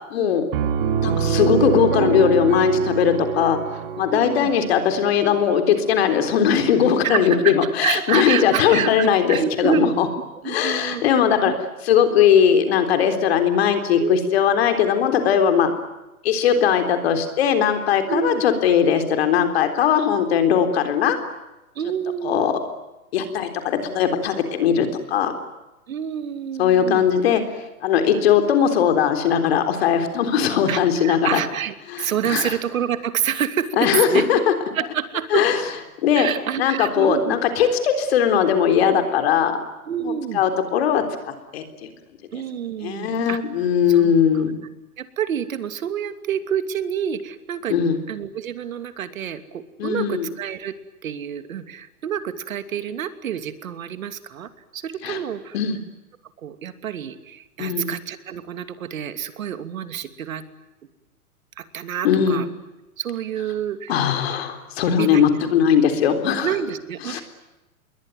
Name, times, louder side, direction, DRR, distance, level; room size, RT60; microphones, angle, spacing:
voice 1, 0.1-0.4 1.0-3.6 4.0-10.1 10.4-11.5 11.8-15.7 16.2-21.2 22.2-22.5 23.1-25.3 26.6-27.4 27.8-31.4 31.9-32.6 33.8-34.4 35.3-35.6 36.0-36.3 36.6-39.6 40.0-41.9 42.3-42.4 42.8-44.5 47.7-48.0 49.8-50.3 55.0-55.2 55.5-55.8 57.6-57.9 62.0-62.4 63.9-66.5 67.1-67.2, left 8 dB, 45° left, 7 dB, 3.7 m, -19 dB
Piano, 0.5-6.1, right 8 dB, 40° right, 2.5 m, -25 dB
voice 2, 4.1-4.5 7.0-9.9 10.4-11.0 11.4-11.5 14.0-14.3 18.1-18.4 21.7-22.5 25.9-27.1 30.3-34.3 34.7-35.4 36.1-37.4 39.9-40.4 42.3-43.4 43.9-44.1 45.0-47.8 48.1-50.7 51.0-55.6 56.4-60.4 61.6-62.5 63.0-63.9 64.9-65.4 66.4-67.2, right 9 dB, 65° right, 10 dB, 2.8 m, -28 dB
28.0 x 22.0 x 9.2 m, 1.0 s
hypercardioid pair, 165°, 43 cm